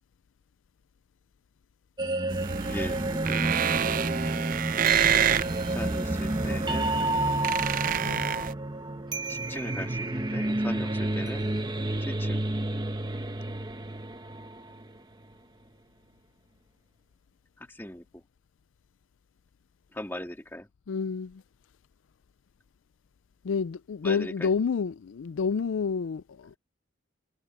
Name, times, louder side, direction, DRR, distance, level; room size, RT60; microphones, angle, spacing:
sound 1, 2.0-15.0, right 1 dB, 20° right, 0.9 m, -30 dB
sound 2, 2.3-8.5, right 9 dB, 40° right, 0.4 m, -28 dB
voice 1, 2.7-3.6 5.7-7.0 9.3-11.5 12.0-12.4 17.6-18.2 19.9-20.7 24.0-24.5, left 1 dB, 10° left, 2.0 m, -39 dB
voice 2, 8.0-8.4 20.9-21.4 23.4-26.6, left 5 dB, 70° left, 0.4 m, -29 dB
head